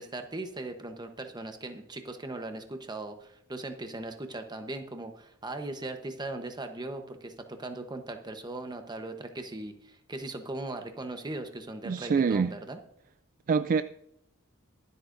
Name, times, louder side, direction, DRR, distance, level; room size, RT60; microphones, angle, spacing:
voice 1, 0.0-12.8, right 2 dB, 20° right, 6 dB, 1.0 m, -39 dB
voice 2, 11.8-12.5 13.5-13.8, right 5 dB, 40° right, 12 dB, 0.3 m, -25 dB
23.5 x 8.2 x 2.6 m, 0.75 s
head